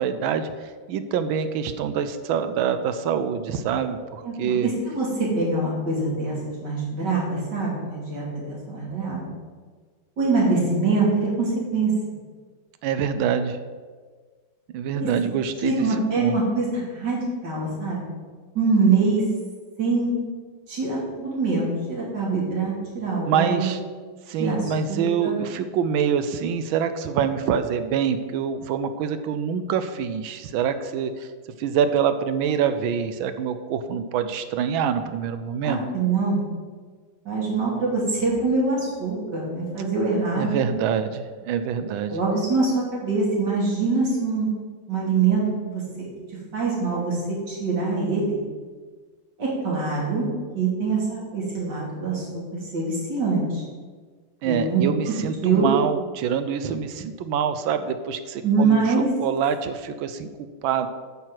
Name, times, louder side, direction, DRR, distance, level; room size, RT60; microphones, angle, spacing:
voice 1, 0.0-4.7 12.8-13.6 14.7-15.8 16.2-16.4 23.3-23.8 24.3-31.3 31.6-35.8 40.4-42.2 54.4-60.3 60.6-60.9, right 7 dB, 75° right, 10 dB, 1.3 m, -25 dB
voice 2, 4.6-9.3 10.2-11.9 14.9-15.1 15.6-18.1 18.6-19.2 19.8-20.1 20.7-23.7 24.4-25.4 35.6-36.4 37.3-40.6 42.1-44.5 44.9-45.8 46.5-47.2 47.5-48.4 49.4-50.2 50.5-52.4 52.7-53.6 54.4-54.8 55.4-55.7 58.4-59.1, right 3 dB, 50° right, -5 dB, 3.3 m, -24 dB
9.0 x 4.7 x 7.5 m, 1.5 s
omnidirectional pair, 2.4 m